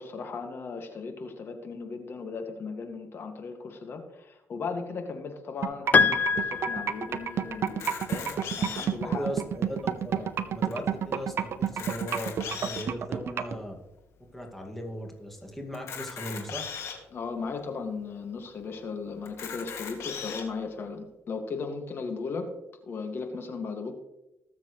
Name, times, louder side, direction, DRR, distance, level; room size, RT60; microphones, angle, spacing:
voice 1, 0.0-9.4 10.2-10.3 17.1-22.5 22.9-24.0, left 4 dB, 55° left, 4 dB, 2.1 m, -37 dB
sound 1, 5.6-13.6, right 8 dB, 60° right, 0.9 m, -28 dB
Piano, 5.9-7.6, left 5 dB, 35° left, 0.4 m, -25 dB
Camera, 7.7-9.1 9.7-9.8 10.0-10.2 10.7-10.8 11.6-13.0 13.6-13.7 15.7-17.0 17.7-17.8 18.1-18.2 19.2-20.4, left 7 dB, 75° left, 2.4 m, -38 dB
voice 2, 9.0-13.8 14.3-16.6, equal, 5° left, 1 dB, 2.1 m, -38 dB
20.0 x 7.4 x 3.2 m, 0.92 s
cardioid pair, 85°, 5 cm